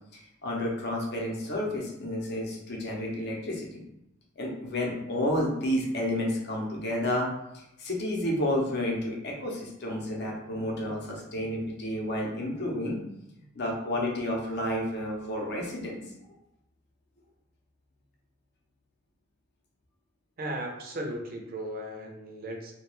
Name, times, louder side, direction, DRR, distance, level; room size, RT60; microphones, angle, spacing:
voice 1, 0.1-3.8 4.4-7.3 7.5-13.0 13.5-16.0, left 1 dB, 55° left, -1 dB, 0.6 m, -31 dB
voice 2, 20.4-22.7, right 1 dB, 45° right, 1 dB, 0.5 m, -36 dB
2.3 x 2.2 x 3.0 m, 0.85 s
head